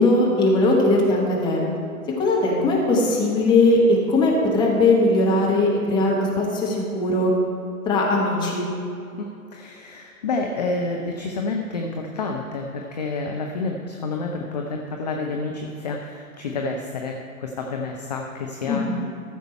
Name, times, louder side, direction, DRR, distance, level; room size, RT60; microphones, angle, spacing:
voice 1, 0.0-1.6 2.2-7.3 7.8-8.7 18.7-19.0, left 2 dB, 10° left, -3 dB, 1.3 m, -19 dB
voice 2, 9.5-18.8, left 3 dB, 30° left, 2 dB, 0.6 m, -29 dB
14.0 x 6.7 x 4.4 m, 2.7 s
figure-of-eight pair, 125°, 45 cm